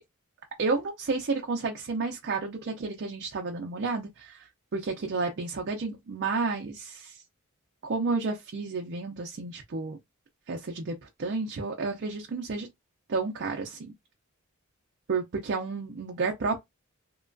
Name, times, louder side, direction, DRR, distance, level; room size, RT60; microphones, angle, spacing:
voice 1, 0.6-7.2 7.8-10.0 10.5-12.7 13.1-13.9 15.1-16.6, right 4 dB, 55° right, 0.5 m, -31 dB
2.9 x 2.3 x 2.5 m
head